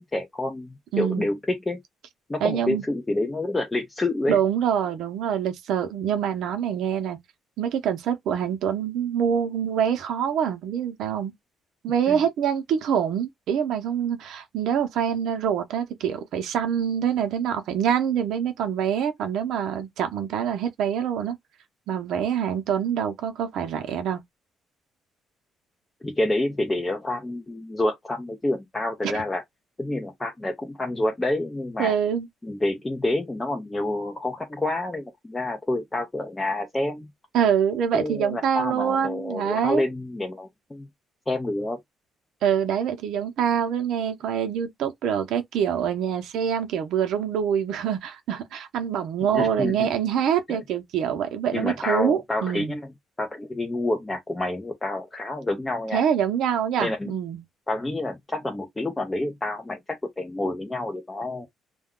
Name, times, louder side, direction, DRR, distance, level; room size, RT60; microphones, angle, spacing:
voice 1, 0.0-1.8 2.3-4.4 12.1-12.2 26.0-29.4 29.8-31.9 32.4-37.1 37.9-40.9 41.3-41.8 49.3-49.9 50.5-50.6 51.5-52.9 53.2-56.0 56.8-57.1 57.7-61.5, left 2 dB, 10° left, 0.5 m, -28 dB
voice 2, 0.9-1.3 2.4-2.8 4.3-7.2 7.6-11.3 11.8-21.4 21.9-24.2 29.0-29.2 31.8-32.3 37.3-39.8 42.4-52.7 55.9-57.4, right 8 dB, 70° right, 0.7 m, -25 dB
2.2 x 2.2 x 3.6 m
cardioid pair, 150°, 0 cm